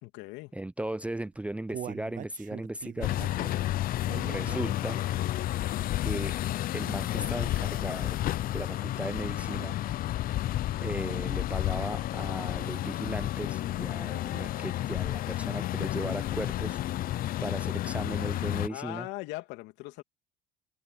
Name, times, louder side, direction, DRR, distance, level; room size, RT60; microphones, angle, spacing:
voice 1, 0.0-0.5 18.7-20.0, left 20 dB, 70° left, 2.8 m, -40 dB
voice 2, 0.5-3.1 4.2-5.0 6.0-6.3 6.7-8.2 8.5-9.8 10.8-16.8 17.4-19.1, right 1 dB, 5° right, 0.6 m, -37 dB
Human voice, 1.2-5.3 5.7-5.8 6.2-6.3, right 11 dB, 45° right, 0.7 m, -43 dB
sound 1, 3.0-18.7, left 14 dB, 50° left, 0.7 m, -31 dB
hypercardioid pair, 75°, 19 cm